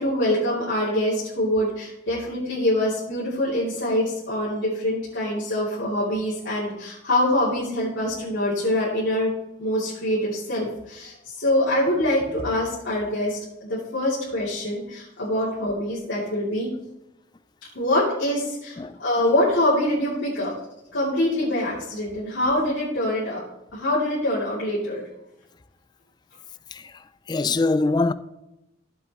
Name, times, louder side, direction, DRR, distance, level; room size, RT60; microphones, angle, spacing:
voice 1, 0.0-9.3 9.6-16.7 17.7-20.5 20.9-23.4 23.7-25.0, left 1 dB, 80° left, 2.8 m, -24 dB
voice 2, 27.3-28.1, left 3 dB, 20° left, 0.3 m, -22 dB
14.5 x 7.6 x 3.0 m
head